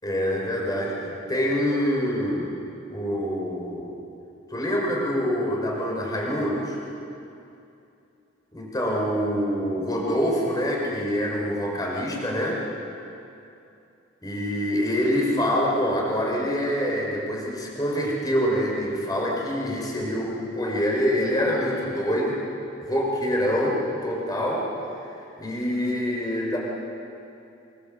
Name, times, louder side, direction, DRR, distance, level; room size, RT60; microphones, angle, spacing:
voice 1, 0.0-2.5 2.9-3.9 4.5-6.8 8.5-12.6 14.2-22.4 22.8-24.7 25.4-26.6, equal, 20° left, -2 dB, 5.8 m, -25 dB
25.5 x 23.5 x 7.9 m, 2.7 s
head